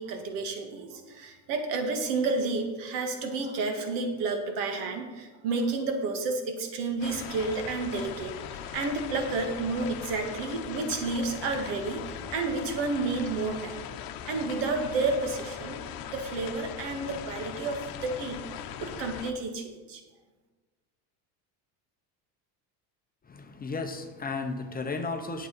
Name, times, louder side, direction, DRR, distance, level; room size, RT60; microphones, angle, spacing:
voice 1, 0.0-12.1 12.3-13.8 14.3-15.8 16.1-18.4 18.8-20.0, right 3 dB, 70° right, 4 dB, 2.0 m, -31 dB
sound 1, 7.0-19.3, left 9 dB, 50° left, 0.9 m, -40 dB
voice 2, 23.3-25.5, left 3 dB, 20° left, 5 dB, 0.8 m, -34 dB
9.2 x 8.0 x 5.5 m, 1.3 s
cardioid pair, 125°, 44 cm